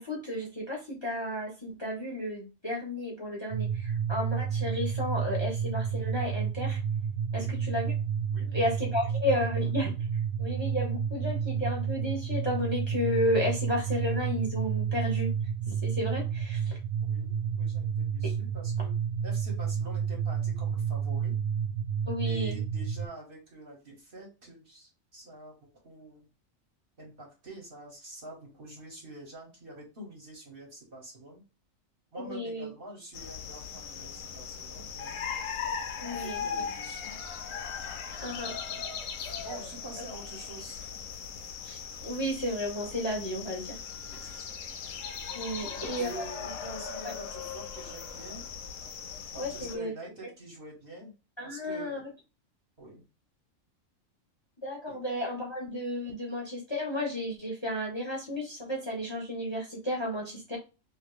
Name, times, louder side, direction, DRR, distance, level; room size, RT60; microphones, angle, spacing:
voice 1, 0.0-6.8 7.3-7.9 8.5-9.9 10.4-15.3 15.8-16.8 22.1-22.6 32.3-32.7 36.0-36.6 38.2-38.5 41.6-43.7 45.3-46.2 49.3-49.9 51.4-52.0 54.6-60.6, left 1 dB, 25° left, -2 dB, 0.8 m, -32 dB
sound 1, 3.5-23.1, right 7 dB, 90° right, 1.0 m, -30 dB
voice 2, 8.3-9.5 17.0-18.9 19.2-21.4 22.2-26.3 27.0-31.4 32.1-35.3 36.0-37.2 38.1-38.8 39.4-40.8 44.1-44.6 45.5-48.5 49.3-51.1 51.4-52.1 52.8-53.0 54.9-55.0, right 1 dB, 45° right, -2 dB, 1.4 m, -47 dB
sound 2, 33.1-49.8, left 6 dB, 80° left, 1.0 m, -39 dB
2.9 x 2.8 x 3.1 m, 0.30 s
omnidirectional pair, 1.4 m